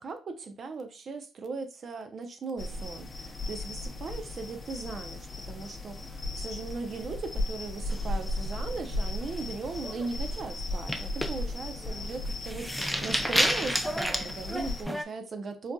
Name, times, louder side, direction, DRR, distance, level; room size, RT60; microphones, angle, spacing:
voice 1, 0.0-15.7, right 4 dB, 50° right, 0.5 m, -38 dB
sound 1, 2.6-14.8, left 1 dB, 35° left, 0.6 m, -36 dB
sound 2, 7.9-8.8 9.1-9.4 9.8-10.1 10.7-15.0, equal, ahead, 0.4 m, -31 dB
3.9 x 2.4 x 2.3 m
cardioid pair, 90°, 0 cm